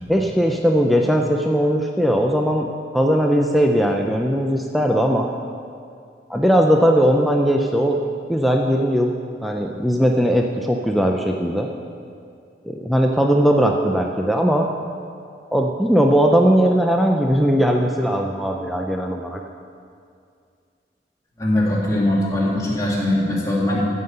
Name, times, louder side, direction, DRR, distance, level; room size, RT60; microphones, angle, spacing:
voice 1, 0.1-2.7 2.9-5.3 6.3-8.0 8.3-9.1 9.4-11.7 12.6-14.7 15.5-19.4, equal, ahead, 1 dB, 0.5 m, -19 dB
voice 2, 21.4-23.8, left 1 dB, 20° left, -5 dB, 2.2 m, -21 dB
15.0 x 5.6 x 7.8 m, 2.3 s
head